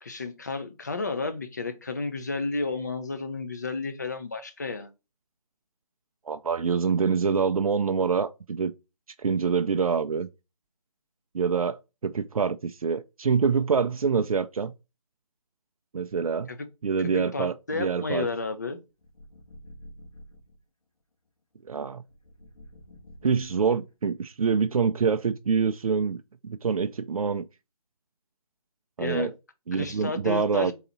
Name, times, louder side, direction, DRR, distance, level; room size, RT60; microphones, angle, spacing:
voice 1, 0.0-4.9 16.5-16.6 17.0-18.8 29.0-29.3 29.7-30.7, left 3 dB, 30° left, 0.5 m, -32 dB
voice 2, 6.3-8.7 9.2-10.3 11.3-14.7 15.9-16.5 16.8-18.3 21.7-22.0 23.2-27.4 29.0-29.3 29.7-30.7, right 5 dB, 70° right, 0.4 m, -26 dB
sound 1, 19.0-20.6 22.1-23.9, equal, 75° left, 1.5 m, -49 dB
3.9 x 2.8 x 4.0 m
figure-of-eight pair, 160°, 19 cm